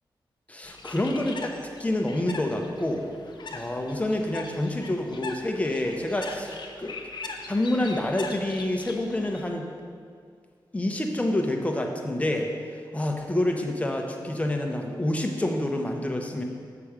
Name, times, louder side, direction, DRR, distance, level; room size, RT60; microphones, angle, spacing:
voice 1, 0.5-1.5 1.8-3.1 3.5-7.0 7.5-9.7 10.7-12.5 12.9-16.4, left 1 dB, 15° left, 2 dB, 0.8 m, -27 dB
Bird, 0.6-9.5, left 3 dB, 60° left, 0.7 m, -41 dB
6.9 x 5.9 x 5.0 m, 2.1 s
wide cardioid pair, 105°, 8 cm